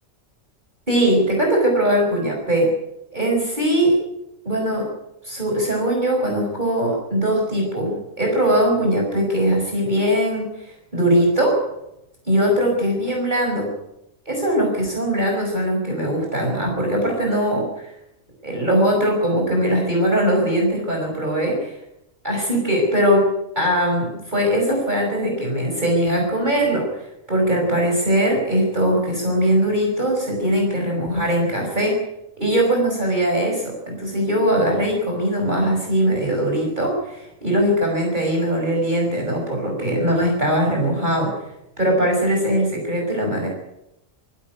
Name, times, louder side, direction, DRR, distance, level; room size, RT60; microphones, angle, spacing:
voice 1, 0.9-2.7 3.1-4.0 4.4-4.9 5.2-11.6 12.3-13.7 14.3-17.9 18.4-21.6 22.2-23.3 23.6-32.0 32.4-41.5 41.8-43.5, right 1 dB, 35° right, -1 dB, 5.8 m, -21 dB
21.0 x 16.0 x 9.6 m, 0.85 s
omnidirectional pair, 1.3 m